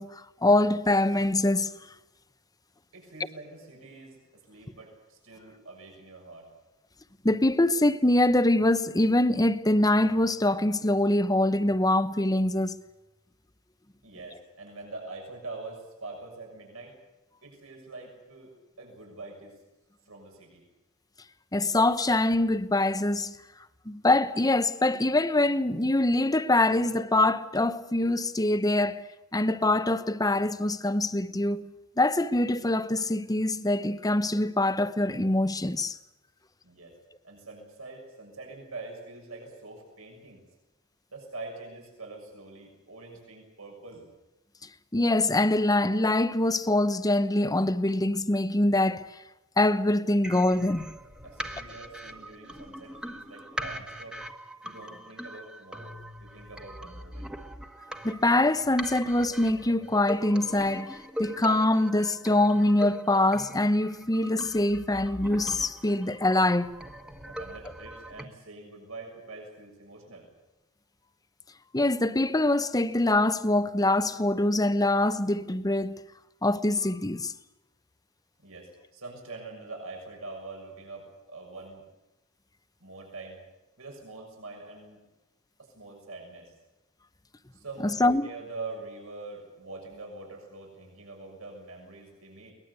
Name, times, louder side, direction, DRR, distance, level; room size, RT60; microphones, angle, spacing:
voice 1, 0.0-1.7 7.2-12.8 21.5-23.4 23.9-31.7 32.0-36.0 44.9-49.1 49.6-50.9 58.0-66.7 71.7-76.0 76.4-77.3 88.0-88.3, left 1 dB, 20° left, 1.0 m, -24 dB
voice 2, 2.9-6.5 14.0-17.0 17.4-18.5 18.8-19.6 20.0-20.6 36.6-37.0 37.2-40.4 41.1-44.0 51.2-54.2 54.6-57.3 67.3-70.3 78.4-81.8 82.8-83.4 83.8-85.0 85.6-86.5 87.5-92.5, right 3 dB, 80° right, 6.7 m, -44 dB
sound 1, 50.2-68.2, equal, 5° right, 1.5 m, -41 dB
23.0 x 20.0 x 8.3 m
head